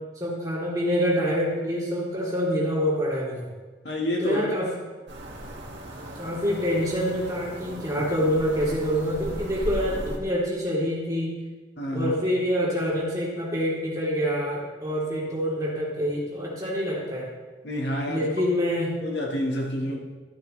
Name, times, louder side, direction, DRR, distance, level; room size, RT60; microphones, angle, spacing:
voice 1, 0.2-3.4 4.2-4.7 6.2-11.4 11.9-17.3 18.1-19.0, equal, 20° right, -7 dB, 3.6 m, -26 dB
voice 2, 3.8-4.4 11.8-12.1 17.6-18.3 19.0-20.0, left 1 dB, 75° left, 0 dB, 1.9 m, -28 dB
sound 1, 5.1-10.2, equal, 90° right, 2.2 m, -37 dB
13.0 x 12.5 x 3.4 m, 1.3 s
head